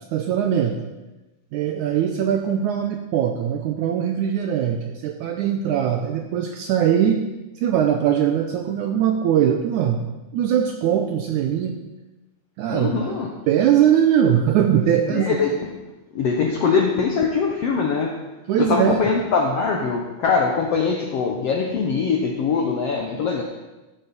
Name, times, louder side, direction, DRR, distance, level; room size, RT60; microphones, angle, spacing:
voice 1, 0.1-0.8 1.5-7.2 7.6-10.0 10.3-11.8 12.6-13.1 13.5-15.4 18.5-19.0, right 9 dB, 80° right, 5 dB, 1.8 m, -21 dB
voice 2, 12.7-13.3 15.1-15.5 16.1-18.1 18.6-23.4, left 5 dB, 75° left, 1 dB, 1.4 m, -22 dB
15.0 x 9.2 x 4.2 m, 1.1 s
omnidirectional pair, 4.1 m